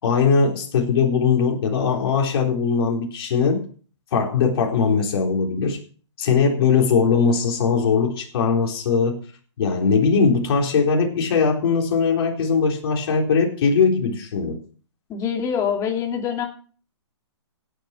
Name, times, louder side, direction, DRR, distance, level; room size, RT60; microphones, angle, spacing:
voice 1, 0.0-3.7 4.1-5.8 6.2-9.2 9.6-14.6, left 5 dB, 55° left, 0 dB, 4.2 m, -20 dB
voice 2, 15.1-16.5, left 7 dB, 20° left, 3 dB, 2.9 m, -24 dB
17.5 x 9.2 x 4.5 m, 0.41 s
hypercardioid pair, 145°, 15 cm